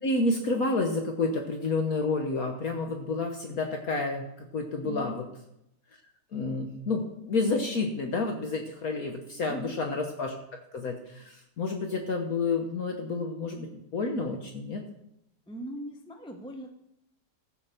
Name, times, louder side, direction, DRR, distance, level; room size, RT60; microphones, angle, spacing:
voice 1, 0.0-5.2 6.3-10.3 10.7-14.8, left 3 dB, 60° left, 3 dB, 1.4 m, -30 dB
voice 2, 4.8-5.1 9.2-9.8 15.5-16.7, equal, 5° left, 4 dB, 0.4 m, -40 dB
15.0 x 5.3 x 6.6 m, 0.81 s
omnidirectional pair, 1.9 m